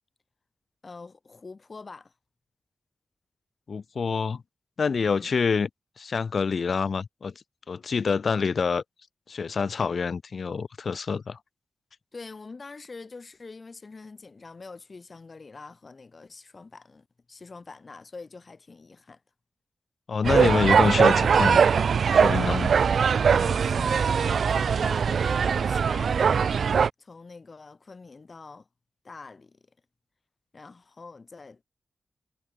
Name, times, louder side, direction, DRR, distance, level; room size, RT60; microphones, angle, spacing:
voice 1, 0.8-2.1 5.0-5.3 12.1-19.2 23.3-26.6 27.0-28.7 29.0-29.6 30.5-31.6, left 4 dB, 35° left, 4.5 m, -45 dB
voice 2, 3.7-4.4 4.8-5.7 6.0-7.3 7.7-8.8 9.3-11.4 20.1-21.6 22.1-22.7, left 5 dB, 55° left, 2.0 m, -26 dB
sound 1, 20.2-26.9, right 6 dB, 80° right, 1.0 m, -21 dB
wide cardioid pair, 160°, 0 cm